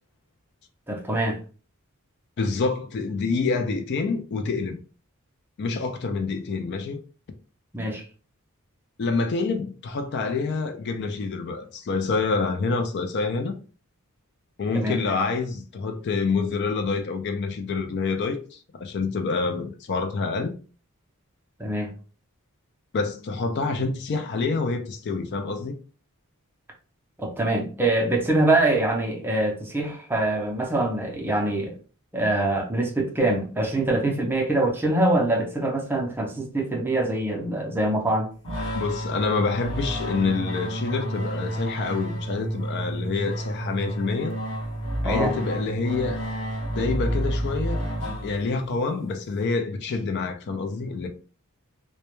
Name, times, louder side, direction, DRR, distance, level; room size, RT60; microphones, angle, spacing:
voice 1, 0.9-1.4 7.7-8.0 14.7-15.0 21.6-21.9 27.2-31.8 32.1-38.3 45.0-45.3, right 2 dB, 10° right, 0.5 m, -24 dB
voice 2, 2.4-4.8 5.6-7.0 9.0-13.6 14.6-20.5 22.9-25.8 38.7-44.3 45.0-46.2 46.7-47.8 48.2-51.1, left 4 dB, 50° left, 0.3 m, -27 dB
sound 1, 38.4-48.7, right 1 dB, 90° left, 0.9 m, -30 dB
2.1 x 2.1 x 2.9 m
head